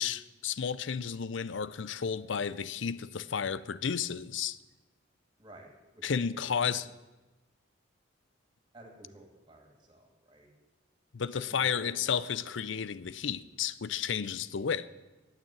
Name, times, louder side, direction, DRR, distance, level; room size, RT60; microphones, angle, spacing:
voice 1, 0.0-4.6 6.0-6.8 11.1-14.9, left 7 dB, 70° left, 0.5 m, -32 dB
voice 2, 5.4-6.0 6.3-6.8 8.7-10.5 11.2-12.1, right 2 dB, 25° right, 2.8 m, -53 dB
13.0 x 9.0 x 8.8 m
head